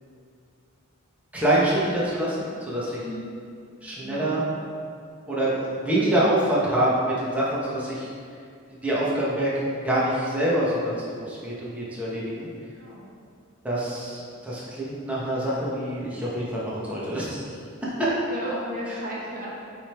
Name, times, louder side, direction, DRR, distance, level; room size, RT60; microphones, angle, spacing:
voice 1, 1.3-3.0 3.8-4.4 5.3-8.1 8.8-12.5 13.6-17.4 17.8-18.1 18.4-18.5 18.9-19.0, right 1 dB, 5° right, -8 dB, 1.4 m, -26 dB
voice 2, 4.0-4.3 12.7-13.1 17.8-19.5, equal, 45° right, -5 dB, 1.1 m, -36 dB
8.4 x 3.7 x 4.5 m, 2.3 s
head